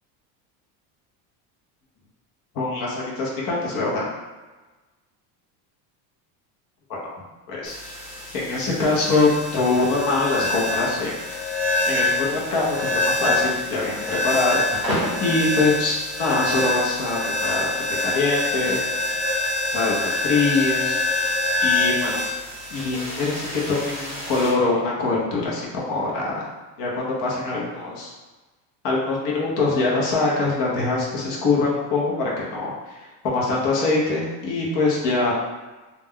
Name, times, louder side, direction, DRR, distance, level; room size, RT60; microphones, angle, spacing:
voice 1, 2.5-4.1 6.9-7.0 7.5-7.9 8.3-11.1 11.9-18.8 19.7-21.0 21.6-22.2 22.7-26.5 26.8-28.1 28.8-33.0 33.2-35.3, left 3 dB, 50° left, -4 dB, 0.8 m, -23 dB
sound 1, 7.6-24.5, left 2 dB, 5° left, 0.9 m, -26 dB
2.3 x 2.2 x 3.5 m, 1.2 s
cardioid pair, 145°, 42 cm